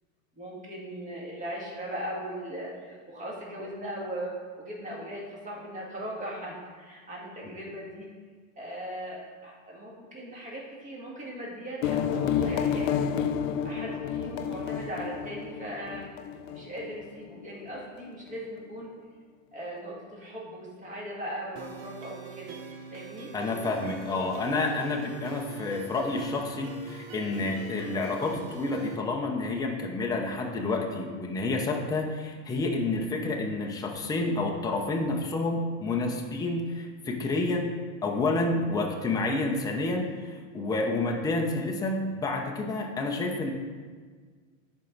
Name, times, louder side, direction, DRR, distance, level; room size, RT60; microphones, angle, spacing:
voice 1, 0.4-8.1 8.6-13.3 13.6-16.1 16.4-18.9 19.5-22.6 22.9-23.3, right 1 dB, 20° right, -3 dB, 1.9 m, -39 dB
sound 1, 11.8-17.2, left 8 dB, 70° left, 0.6 m, -30 dB
sound 2, 21.6-28.9, right 5 dB, 45° right, 0.9 m, -43 dB
voice 2, 23.3-43.5, left 2 dB, 10° left, 0 dB, 0.7 m, -29 dB
10.0 x 4.6 x 4.0 m, 1.5 s
supercardioid pair, 130°, 40 cm